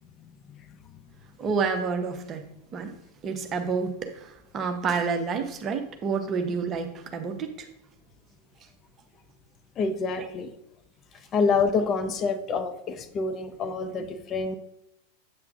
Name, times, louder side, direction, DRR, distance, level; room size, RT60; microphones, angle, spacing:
voice 1, 1.4-2.4 2.7-2.9 3.2-4.3 4.5-7.5, right 5 dB, 30° right, 6 dB, 1.0 m, -28 dB
voice 2, 9.8-10.5 11.3-14.6, left 4 dB, 30° left, 9 dB, 0.6 m, -27 dB
8.3 x 8.2 x 2.6 m, 0.84 s
figure-of-eight pair, 90°, 0 cm